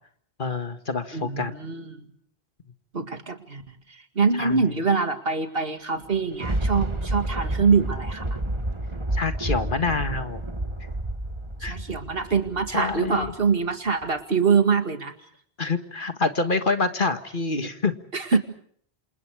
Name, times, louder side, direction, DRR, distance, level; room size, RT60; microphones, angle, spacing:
voice 1, 0.4-1.6 4.4-4.6 9.1-10.4 11.6-11.8 12.7-13.3 15.6-17.9 18.3-18.4, left 3 dB, 55° left, 8 dB, 1.9 m, -26 dB
voice 2, 1.1-2.1 2.9-8.2 11.6-15.1 18.1-18.4, right 5 dB, 60° right, 7 dB, 2.4 m, -24 dB
Thunder, 6.0-13.5 14.0-14.1, right 1 dB, 25° right, 1.9 m, -30 dB
28.0 x 27.5 x 4.8 m, 0.62 s
omnidirectional pair, 1.1 m